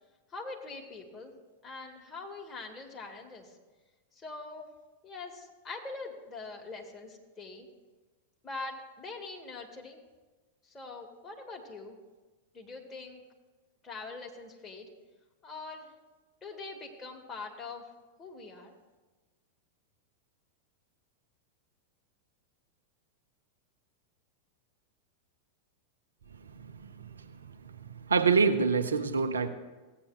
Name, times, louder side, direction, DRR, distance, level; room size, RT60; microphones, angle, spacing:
voice 1, 0.3-1.3 1.6-3.6 4.1-4.7 5.0-7.7 8.4-10.0 10.6-12.0 12.5-13.2 13.8-14.9 15.4-15.9 16.4-17.9 18.2-18.7, left 3 dB, 20° left, 0 dB, 1.5 m, -43 dB
voice 2, 26.4-27.4 27.6-29.5, right 5 dB, 70° right, 7 dB, 0.6 m, -27 dB
15.5 x 8.7 x 2.3 m, 1.2 s
figure-of-eight pair, 90°, 0 cm